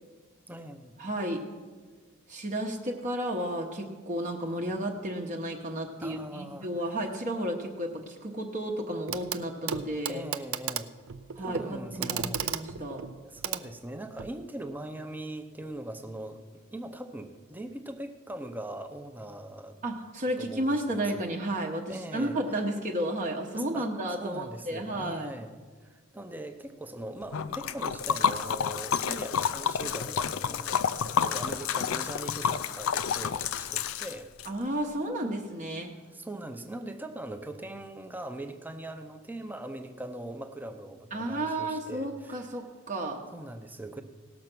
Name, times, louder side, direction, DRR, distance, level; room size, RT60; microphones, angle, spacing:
voice 1, 0.5-0.9 6.0-7.0 10.1-10.9 11.4-12.4 13.2-19.8 20.4-21.2 21.9-22.6 23.5-25.6 25.8-34.3 35.2-35.4 36.1-42.5 43.3-44.0, right 1 dB, 10° right, 7 dB, 0.7 m, -41 dB
voice 2, 1.0-1.4 2.3-10.2 11.4-13.0 19.8-25.3 34.4-35.9 41.1-43.2, right 1 dB, 35° right, 1 dB, 0.9 m, -32 dB
Clock, 9.1-9.4 9.7-14.4 15.6-15.7, right 8 dB, 70° right, 0.5 m, -35 dB
Liquid, 27.3-34.5, left 7 dB, 70° left, 0.4 m, -29 dB
17.5 x 6.6 x 6.0 m, 1.5 s
head